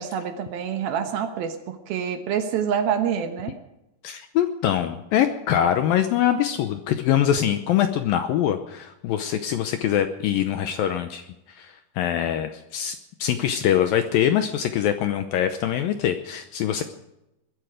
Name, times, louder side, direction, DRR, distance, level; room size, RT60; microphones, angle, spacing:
voice 1, 0.0-3.6, right 8 dB, 70° right, 7 dB, 2.8 m, -27 dB
voice 2, 4.0-16.8, left 10 dB, 75° left, 8 dB, 2.2 m, -23 dB
21.5 x 13.0 x 5.0 m, 0.91 s
omnidirectional pair, 4.8 m